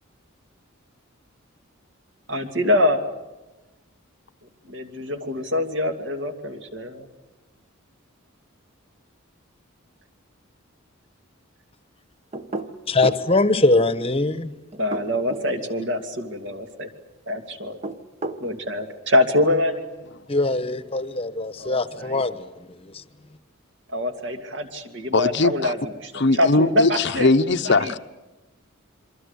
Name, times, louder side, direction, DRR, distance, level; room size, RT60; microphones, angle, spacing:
voice 1, 2.3-3.0 4.7-7.1 14.8-16.9 17.3-17.8 18.4-19.9 21.6-22.2 23.9-27.3 27.6-27.9, left 1 dB, 60° right, 2.7 m, -24 dB
sound 1, 12.3-13.3 14.7-15.5 17.6-18.5, right 2 dB, 30° right, 1.2 m, -32 dB
voice 2, 12.9-14.5 20.3-22.5 22.8-23.0, left 2 dB, 30° left, 1.1 m, -22 dB
voice 3, 25.1-25.7 26.1-28.0, left 3 dB, 55° left, 0.9 m, -20 dB
27.0 x 24.0 x 8.3 m
head